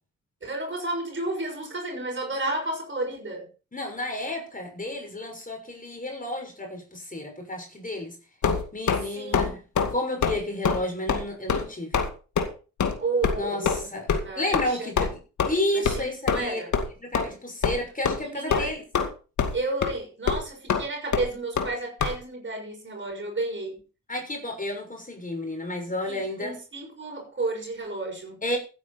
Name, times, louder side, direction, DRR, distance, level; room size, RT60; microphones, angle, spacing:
voice 1, 0.4-3.5 9.1-9.6 13.0-13.9 14.2-14.9 15.7-16.7 18.2-18.7 19.5-23.8 26.1-28.4, right 2 dB, 40° right, 6.4 m, -32 dB
voice 2, 3.7-8.2 8.7-9.6 9.9-12.0 13.4-14.1 14.4-15.1 15.5-16.6 17.0-18.8 24.1-26.6 28.4-28.6, left 1 dB, 25° left, 6.2 m, -31 dB
sound 1, 8.4-9.0 9.3-9.5 9.7-9.9 10.2-10.4 10.6-10.8 11.1-11.2 11.5-11.6 11.9-12.1 12.4-12.5 12.8-12.9 13.2-13.3 13.6-13.8 14.1-14.2 14.5-14.6 15.0-15.1 15.4-15.5 15.8-16.0 16.3-16.4 16.7-16.9 17.1-17.2 17.6-17.8 18.0-18.2 18.5-19.1 19.4-19.6 19.8-19.9 20.3-20.4 20.7-20.8 21.1-21.2 21.6-21.7 22.0-22.1, left 6 dB, 65° left, 2.3 m, -24 dB
15.5 x 9.4 x 4.3 m
cardioid pair, 65°, 31 cm